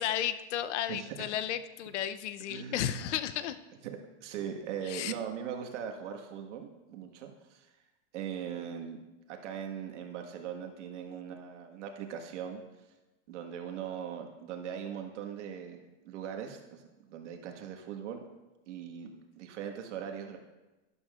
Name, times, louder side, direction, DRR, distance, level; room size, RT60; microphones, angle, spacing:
voice 1, 0.0-3.6 4.8-5.1, left 11 dB, 80° left, 13 dB, 0.7 m, -33 dB
voice 2, 0.9-1.3 2.5-3.1 3.8-7.7 8.1-9.0 9.3-12.6 13.3-16.8 17.1-18.2 18.7-20.4, right 8 dB, 85° right, 4 dB, 1.6 m, -40 dB
12.5 x 11.5 x 2.4 m, 1.1 s
supercardioid pair, 180°, 35 cm